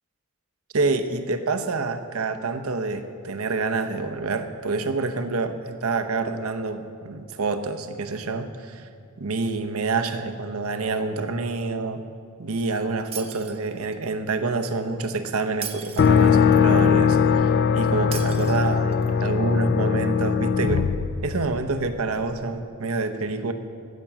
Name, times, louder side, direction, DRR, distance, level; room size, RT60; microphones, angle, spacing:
voice 1, 0.7-8.9 9.2-12.0 12.4-20.9 21.2-23.5, right 3 dB, 85° right, 8 dB, 0.8 m, -27 dB
Shatter, 13.1-14.1 15.6-16.6 18.1-19.1, right 8 dB, 30° right, 0.7 m, -37 dB
sound 1, 16.0-21.9, left 6 dB, 50° left, 0.4 m, -20 dB
15.5 x 6.0 x 7.4 m, 2.3 s
head